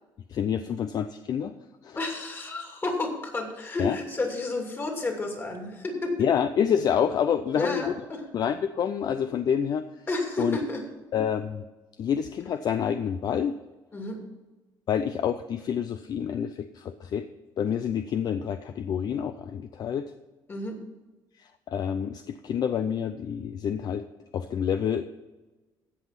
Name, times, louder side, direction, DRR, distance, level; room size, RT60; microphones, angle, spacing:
voice 1, 0.3-1.5 1.8-2.0 3.8-4.0 6.2-7.9 8.3-9.8 10.4-10.6 11.1-11.6 12.0-13.6 14.9-17.3 17.6-20.0 21.4-24.0 24.3-25.1, left 8 dB, 50° left, 10 dB, 0.5 m, -27 dB
voice 2, 1.9-6.3 7.5-8.2 10.1-10.9 13.9-14.2 20.5-20.8, left 2 dB, 25° left, 2 dB, 2.6 m, -31 dB
16.0 x 5.5 x 5.9 m, 1.2 s
cardioid pair, 115°, 8 cm